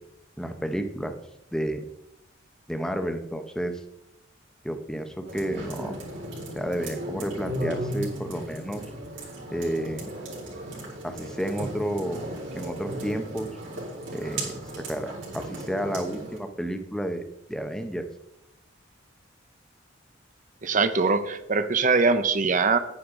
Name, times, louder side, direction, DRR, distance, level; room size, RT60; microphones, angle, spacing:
voice 1, 0.4-1.1 1.5-1.8 2.7-3.8 4.6-6.0 6.5-8.8 9.5-10.1 11.0-12.3 12.6-13.5 14.1-14.6 14.9-17.2 17.5-18.1, equal, 5° left, 7 dB, 0.8 m, -31 dB
sound 1, 5.3-16.4, right 1 dB, 65° right, 4.1 m, -36 dB
voice 2, 20.6-22.8, right 4 dB, 40° right, 11 dB, 0.8 m, -22 dB
10.0 x 9.8 x 3.7 m, 0.83 s
head